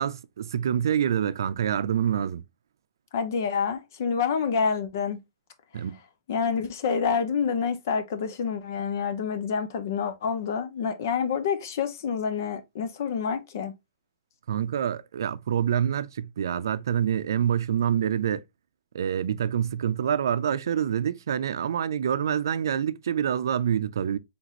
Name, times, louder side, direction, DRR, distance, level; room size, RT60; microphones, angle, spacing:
voice 1, 0.0-2.4 5.7-6.0 14.5-18.4 18.9-24.2, right 9 dB, 85° right, 0.4 m, -26 dB
voice 2, 3.1-5.2 6.3-13.7, left 6 dB, 50° left, 0.8 m, -27 dB
4.1 x 3.5 x 2.9 m
hypercardioid pair, 175°, 2 cm